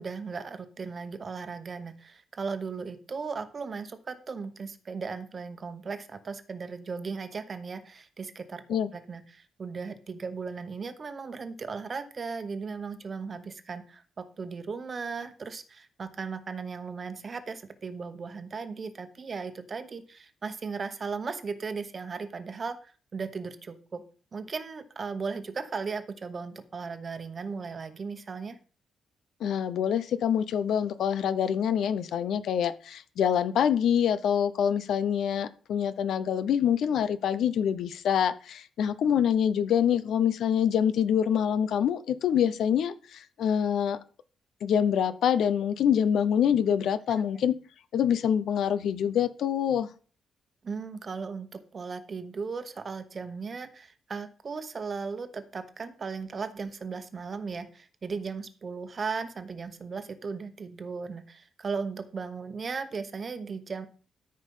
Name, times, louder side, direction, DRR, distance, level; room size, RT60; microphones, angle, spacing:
voice 1, 0.0-8.6 8.9-24.0 24.3-28.6 47.1-47.2 50.6-63.9, right 5 dB, 35° right, 1.1 m, -37 dB
voice 2, 29.4-44.0 44.6-47.5 47.9-49.9, left 8 dB, 75° left, 0.7 m, -25 dB
13.0 x 5.3 x 5.5 m
cardioid pair, 150°, 0 cm